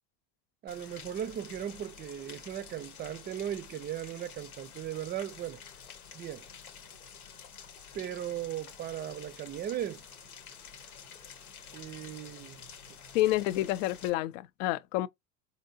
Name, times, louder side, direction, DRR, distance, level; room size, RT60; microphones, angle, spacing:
voice 1, 0.6-5.6 6.1-6.5 7.9-10.0 11.7-12.6, right 11 dB, 25° right, 0.4 m, -37 dB
Rain, 0.7-14.1, left 7 dB, 90° left, 1.0 m, -49 dB
voice 2, 13.1-15.1, left 15 dB, 60° left, 0.5 m, -29 dB
4.5 x 2.7 x 2.6 m
hypercardioid pair, 75°, 43 cm